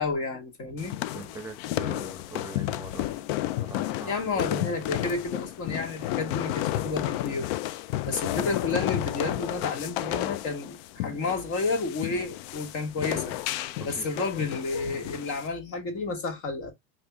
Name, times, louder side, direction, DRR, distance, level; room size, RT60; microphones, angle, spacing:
voice 1, 0.0-1.0 4.1-7.5 8.0-13.4 13.8-16.7, left 3 dB, 45° left, 1.4 m, -31 dB
sound 1, 0.8-15.5, left 15 dB, 70° left, 0.4 m, -32 dB
voice 2, 1.0-3.1 3.5-4.6 13.8-14.1, right 2 dB, 10° right, 1.0 m, -42 dB
3.3 x 2.8 x 3.4 m
supercardioid pair, 120°, 31 cm